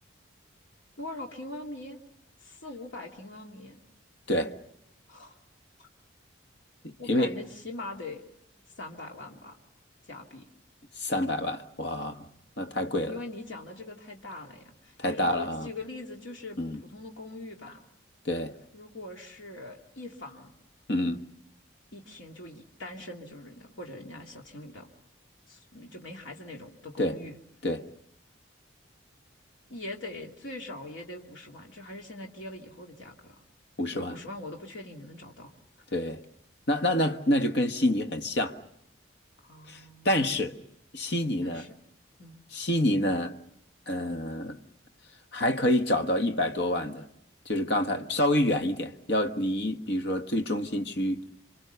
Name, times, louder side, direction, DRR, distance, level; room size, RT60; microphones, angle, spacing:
voice 1, 1.0-2.0 2.4-3.8 5.1-5.4 7.0-8.2 8.8-9.6 10.0-10.5 13.1-17.8 18.7-20.5 21.9-24.9 25.5-27.4 29.7-33.4 33.9-35.5 39.4-40.1 41.4-41.8 42.2-42.4, left 2 dB, 70° left, 2.4 m, -42 dB
voice 2, 6.8-7.4 11.0-12.3 12.6-13.1 15.0-15.7 16.6-16.8 18.2-18.5 20.9-21.2 27.0-27.2 27.6-27.8 33.8-34.1 35.9-36.2 36.7-38.6 39.7-39.8 40.0-40.6 40.9-41.6 42.5-43.3 43.9-44.6 45.3-47.1 47.4-51.2, left 1 dB, 55° left, 1.4 m, -27 dB
28.0 x 25.0 x 6.8 m
head